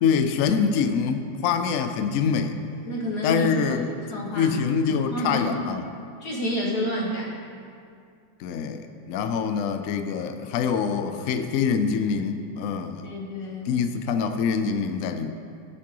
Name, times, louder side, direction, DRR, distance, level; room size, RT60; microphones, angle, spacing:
voice 1, 0.0-2.6 3.2-3.9 4.3-5.8 8.4-13.1 13.7-15.3, left 6 dB, 80° left, 7 dB, 0.7 m, -25 dB
voice 2, 2.9-4.6 4.9-5.5 6.2-7.4 9.2-9.3 13.0-13.9, equal, 60° left, -4 dB, 2.3 m, -30 dB
16.0 x 5.9 x 3.1 m, 2.4 s
omnidirectional pair, 2.0 m